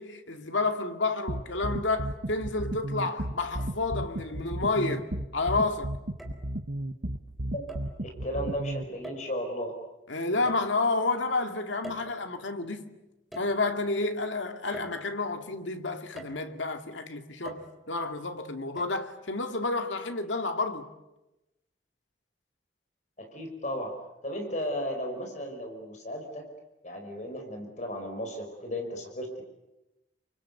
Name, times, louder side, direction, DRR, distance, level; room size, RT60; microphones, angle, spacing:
voice 1, 0.0-5.9 10.1-12.9 13.4-17.6 17.9-20.9, left 3 dB, 85° left, 2.3 m, -30 dB
sound 1, 1.3-8.8, right 1 dB, 65° right, 1.4 m, -33 dB
sound 2, 3.6-4.2 4.9-5.5 6.2-6.5 7.7-8.0 9.0-9.6 10.5-11.1 11.8-12.7 13.3-14.0 14.7-15.5 16.2-16.7 17.5-18.1 18.8-18.9, right 1 dB, ahead, 4.1 m, -46 dB
voice 2, 8.0-9.7 23.2-23.9 24.2-26.4 26.8-29.4, equal, 40° left, 5.1 m, -35 dB
28.5 x 24.5 x 8.2 m
head